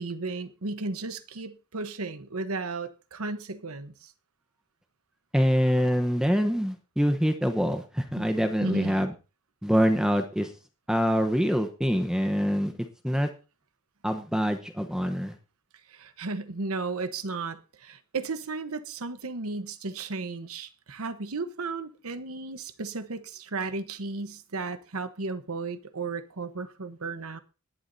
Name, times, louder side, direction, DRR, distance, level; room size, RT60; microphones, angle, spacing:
voice 1, 0.0-4.1 8.2-8.3 8.6-9.1 15.9-27.4, right 3 dB, 80° right, 1.0 m, -34 dB
voice 2, 5.3-9.1 9.6-10.5 10.9-12.7 13.0-13.3 14.0-15.4, equal, 5° right, 0.9 m, -25 dB
20.0 x 11.0 x 2.7 m
head